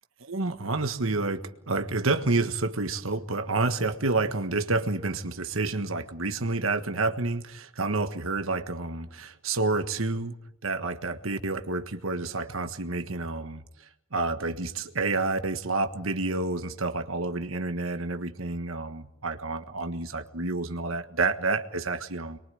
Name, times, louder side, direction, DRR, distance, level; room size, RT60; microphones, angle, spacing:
voice 1, 0.2-10.4 10.6-22.4, right 3 dB, 85° right, 8 dB, 1.5 m, -29 dB
26.5 x 23.0 x 9.4 m, 0.85 s
head